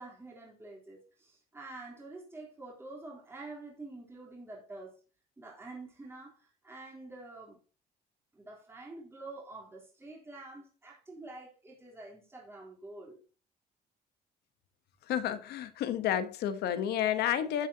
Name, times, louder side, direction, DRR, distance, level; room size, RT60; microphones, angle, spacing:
voice 1, 0.0-5.0 5.4-7.6 8.3-13.2, right 2 dB, 15° right, 3.6 m, -47 dB
voice 2, 15.1-17.7, left 10 dB, 75° left, 1.1 m, -30 dB
13.5 x 7.6 x 2.9 m
cardioid pair, 110°, 17 cm